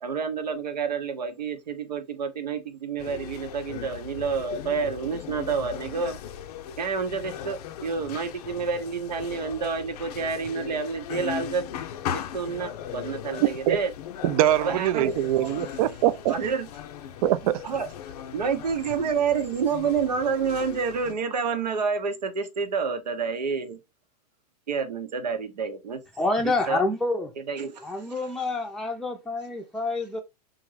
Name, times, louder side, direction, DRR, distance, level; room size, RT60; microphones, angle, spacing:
voice 1, 0.0-6.2 6.8-11.7 12.1-13.9 14.6-15.2 16.3-16.7 17.6-17.9 18.3-23.8 24.7-26.0 26.7-26.8 27.5-27.9, right 5 dB, 90° right, 0.8 m, -28 dB
sound 1, 3.0-21.1, left 9 dB, 70° left, 0.5 m, -38 dB
voice 2, 14.2-16.3 17.2-17.6, right 12 dB, 60° right, 0.4 m, -23 dB
voice 3, 26.2-27.3 27.8-30.2, left 2 dB, ahead, 0.5 m, -27 dB
3.7 x 2.5 x 3.1 m
hypercardioid pair, 110°, 21 cm